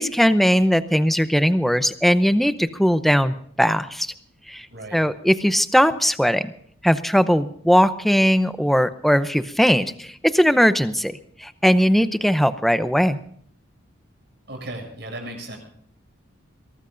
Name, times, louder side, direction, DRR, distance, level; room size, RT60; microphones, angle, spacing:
voice 1, 0.0-4.1 4.5-4.7 4.9-6.5 6.8-13.2, equal, ahead, 11 dB, 0.6 m, -19 dB
voice 2, 14.5-15.6, right 1 dB, 55° right, 2 dB, 7.3 m, -35 dB
22.5 x 18.5 x 2.6 m, 0.63 s
head